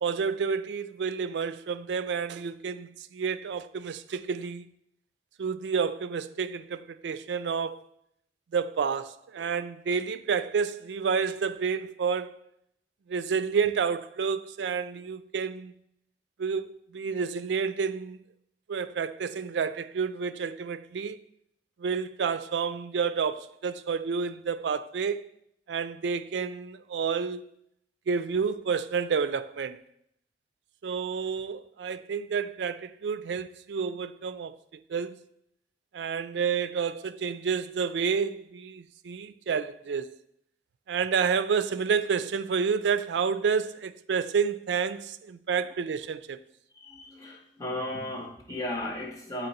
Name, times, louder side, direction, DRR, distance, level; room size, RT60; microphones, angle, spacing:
voice 1, 0.0-4.6 5.4-7.9 8.5-12.3 13.1-15.7 16.4-18.2 18.7-21.2 21.8-25.2 25.7-27.4 28.1-29.8 30.8-35.2 35.9-40.1 40.9-46.4, right 6 dB, 90° right, 0.4 m, -29 dB
voice 2, 46.7-49.5, left 1 dB, 20° left, 1.0 m, -35 dB
7.7 x 4.3 x 4.1 m
head